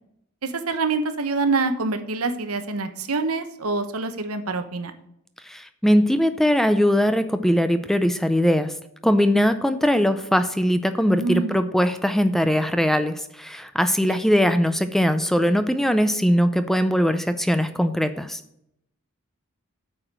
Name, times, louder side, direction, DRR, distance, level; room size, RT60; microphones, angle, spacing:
voice 1, 0.4-4.9 11.0-11.7 14.0-14.2, right 3 dB, 85° right, 8 dB, 1.0 m, -26 dB
voice 2, 5.4-8.7 9.0-18.4, equal, ahead, 10 dB, 0.4 m, -21 dB
8.6 x 5.0 x 7.3 m, 0.75 s
head